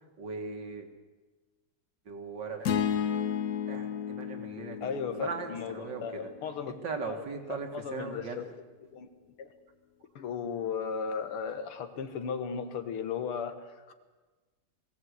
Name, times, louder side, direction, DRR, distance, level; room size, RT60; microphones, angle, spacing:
voice 1, 0.2-0.9 2.1-2.7 3.7-6.3 6.7-8.4, right 4 dB, 55° right, 4 dB, 2.5 m, -39 dB
sound 1, 2.6-6.9, left 8 dB, 60° left, 1.0 m, -33 dB
voice 2, 4.8-6.7 7.0-7.2 7.5-8.5 8.9-9.1 9.4-9.5 10.2-13.9, left 6 dB, 85° left, 8 dB, 2.2 m, -36 dB
21.0 x 16.5 x 8.2 m, 1.3 s
omnidirectional pair, 2.4 m